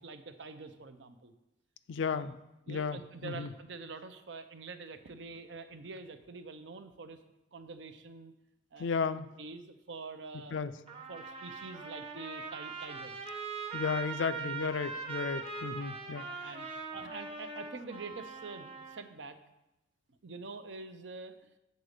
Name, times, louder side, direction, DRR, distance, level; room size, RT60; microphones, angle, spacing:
voice 1, 0.0-1.3 2.0-2.4 2.7-7.2 7.5-8.3 8.7-8.9 9.4-10.6 11.1-13.2 15.9-19.4 20.2-21.3, right 4 dB, 70° right, 9 dB, 0.6 m, -46 dB
voice 2, 1.9-2.3 2.7-3.5 8.8-9.3 10.5-10.7 13.7-16.3, left 5 dB, 75° left, 13 dB, 0.4 m, -34 dB
Trumpet, 10.9-19.0, right 4 dB, 30° right, 1.0 m, -41 dB
8.5 x 4.0 x 6.5 m, 0.92 s
head